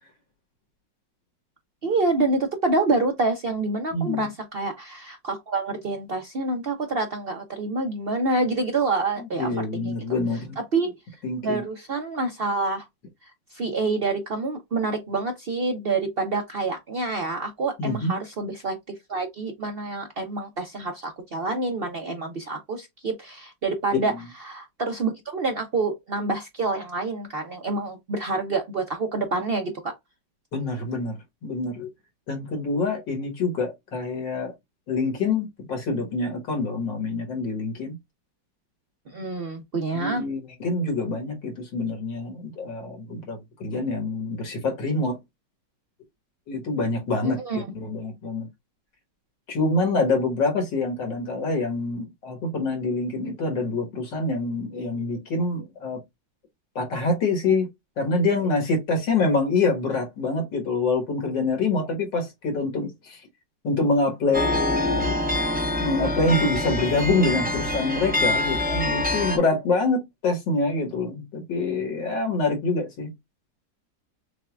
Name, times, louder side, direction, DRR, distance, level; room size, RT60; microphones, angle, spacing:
voice 1, 1.8-9.9 10.7-10.9 11.4-12.8 13.5-18.8 19.1-24.1 24.4-29.9 39.1-40.2 47.2-47.6, right 3 dB, 70° right, 0.5 m, -27 dB
voice 2, 3.9-4.3 9.2-10.6 11.2-11.6 17.8-18.1 23.9-24.2 30.5-31.9 32.3-34.5 34.9-38.0 39.9-45.2 46.5-48.5 49.5-56.0 56.8-57.7 58.0-63.2 63.6-65.2 65.8-73.1, left 3 dB, 75° left, 2.2 m, -26 dB
sound 1, 64.3-69.4, left 1 dB, 10° right, 0.5 m, -25 dB
6.5 x 2.2 x 2.4 m
omnidirectional pair, 2.0 m